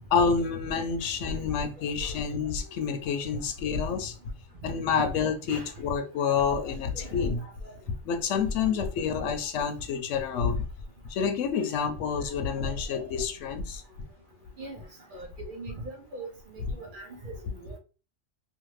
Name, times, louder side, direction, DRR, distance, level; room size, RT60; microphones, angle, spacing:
voice 1, 0.1-4.1 4.6-7.4 8.1-10.6 11.0-13.8, left 6 dB, 80° left, 7 dB, 0.9 m, -28 dB
voice 2, 1.8-2.2 3.9-4.0 5.0-5.1 5.5-5.7 6.2-6.4 6.9-7.5 8.6-8.8 11.6-11.7 12.6-12.7 14.6-14.8 15.1-17.8, right 2 dB, 55° right, 2 dB, 0.7 m, -42 dB
2.5 x 2.5 x 3.0 m, 0.35 s
omnidirectional pair, 1.3 m